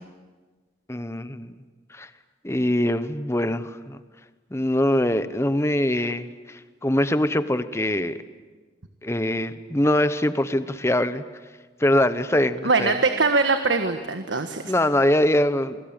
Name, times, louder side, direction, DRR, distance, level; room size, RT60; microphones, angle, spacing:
voice 1, 0.9-1.5 1.9-2.1 2.4-4.0 4.5-8.2 9.0-11.2 11.8-13.0 14.7-15.8, left 1 dB, 15° left, 12 dB, 1.0 m, -23 dB
voice 2, 12.6-14.7, right 3 dB, 85° right, 7 dB, 1.5 m, -22 dB
29.0 x 22.0 x 9.0 m, 1.3 s
head